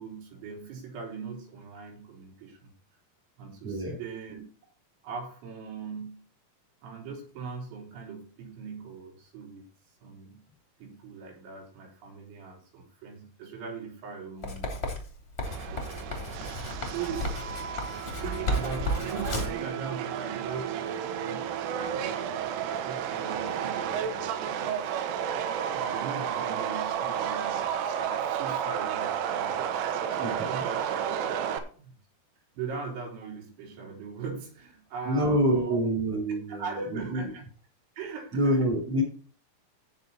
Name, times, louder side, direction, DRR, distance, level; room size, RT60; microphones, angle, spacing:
voice 1, 0.0-2.7 3.4-4.4 5.0-6.2 6.8-9.7 10.0-10.4 10.8-14.8 15.5-16.3 16.8-17.4 18.2-22.5 22.8-25.1 25.7-30.0 30.5-31.4 31.7-32.0 32.6-35.8 36.5-37.4 38.0-38.7, right 5 dB, 75° right, 0 dB, 5.7 m, -40 dB
voice 2, 3.6-4.0 30.2-30.5 35.0-37.3 38.3-39.0, right 1 dB, 35° right, 0 dB, 3.2 m, -27 dB
Writing, 14.4-19.6, left 1 dB, 30° left, 1.1 m, -33 dB
Subway metro underground, 15.5-31.6, right 8 dB, 90° right, 3.6 m, -32 dB
16.0 x 5.5 x 4.3 m, 0.40 s
omnidirectional pair, 5.5 m